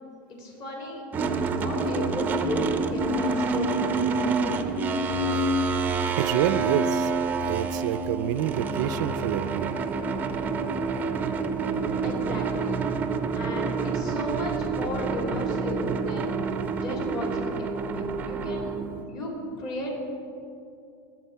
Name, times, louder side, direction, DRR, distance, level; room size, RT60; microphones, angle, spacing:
voice 1, 0.3-1.0 1.6-2.6 2.9-4.5 12.0-12.8 13.3-16.4 16.7-18.7 19.0-19.3 19.6-20.0, left 1 dB, 35° left, 0 dB, 2.7 m, -34 dB
sound 1, 1.1-19.0, right 4 dB, 15° right, 0.6 m, -27 dB
voice 2, 6.2-7.1 7.5-9.8, right 12 dB, 60° right, 12 dB, 0.4 m, -27 dB
20.5 x 7.3 x 4.6 m, 2.6 s
supercardioid pair, 160°, 11 cm